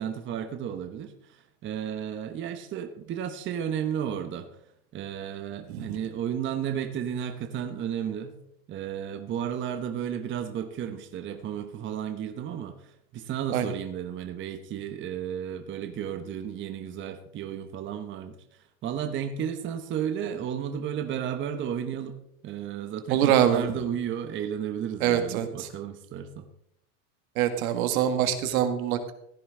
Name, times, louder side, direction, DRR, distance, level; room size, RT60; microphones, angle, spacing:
voice 1, 0.0-4.5 4.9-8.4 8.7-18.4 18.8-22.2 22.4-26.5, right 9 dB, 25° right, 7 dB, 1.0 m, -33 dB
voice 2, 23.1-23.6 25.0-25.7 27.4-29.1, right 10 dB, 65° right, 8 dB, 1.9 m, -24 dB
16.0 x 10.0 x 3.7 m, 0.74 s
supercardioid pair, 135°, 45 cm